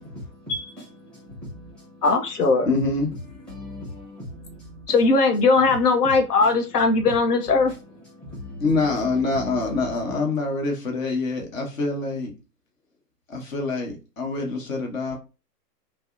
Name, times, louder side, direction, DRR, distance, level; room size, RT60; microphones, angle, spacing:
voice 1, 1.1-1.8 3.5-4.9 8.2-8.7 9.4-9.6, left 2 dB, ahead, 0.6 m, -39 dB
voice 2, 2.0-2.7 4.9-7.7, left 3 dB, 75° left, 0.6 m, -19 dB
voice 3, 2.7-3.1 8.6-12.3 13.3-15.2, left 3 dB, 55° left, 1.0 m, -25 dB
2.5 x 2.0 x 2.3 m
figure-of-eight pair, 125°, 48 cm